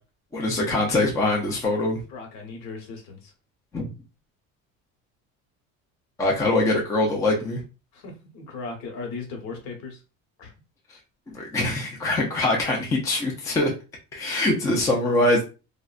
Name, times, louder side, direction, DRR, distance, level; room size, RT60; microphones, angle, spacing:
voice 1, 0.3-2.0 3.7-3.9 6.2-7.6 11.3-13.7 14.1-15.4, left 2 dB, 10° left, -1 dB, 0.4 m, -23 dB
voice 2, 2.1-3.2 7.9-10.0 10.4-10.5, left 4 dB, 60° left, 2 dB, 1.1 m, -37 dB
3.7 x 2.1 x 2.4 m, 0.31 s
cardioid pair, 175°, 31 cm